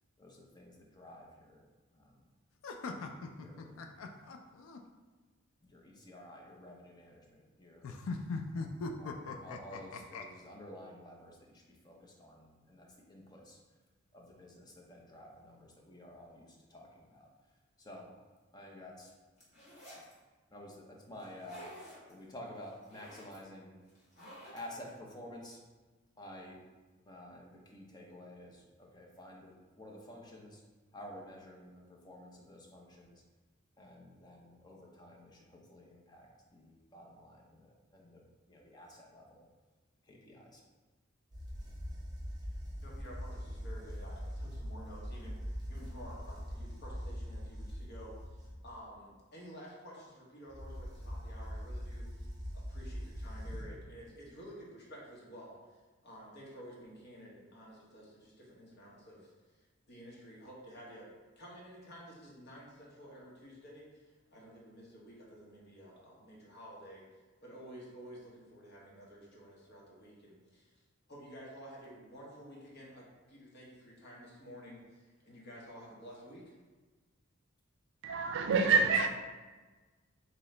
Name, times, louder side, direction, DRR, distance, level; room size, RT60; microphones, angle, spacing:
voice 1, 0.2-1.6 1.9-2.3 3.4-3.8 5.7-8.0 8.8-13.6 14.1-17.3 17.8-18.2 18.5-19.2 20.5-21.7 22.1-23.8 24.5-25.6 26.2-26.7 27.0-30.6 30.9-33.2 33.8-39.5 40.0-40.6 78.5-78.9, left 1 dB, 20° left, 0.6 m, -51 dB
sound 1, 2.6-4.8 7.8-10.2, left 3 dB, 70° left, 0.4 m, -40 dB
sound 2, 19.4-20.1 21.2-22.1 22.6-23.4 23.9-24.9, equal, 35° left, 1.3 m, -51 dB
sound 3, 41.3-48.7 50.5-53.9, equal, 20° right, 0.7 m, -42 dB
voice 2, 42.8-48.4 48.6-52.1 52.5-55.6 56.0-61.1 61.4-67.1 67.4-70.7 71.1-76.5, equal, 55° left, 1.1 m, -52 dB
voice 3, 78.0-79.1, right 4 dB, 60° right, 0.4 m, -27 dB
3.7 x 2.9 x 3.2 m
head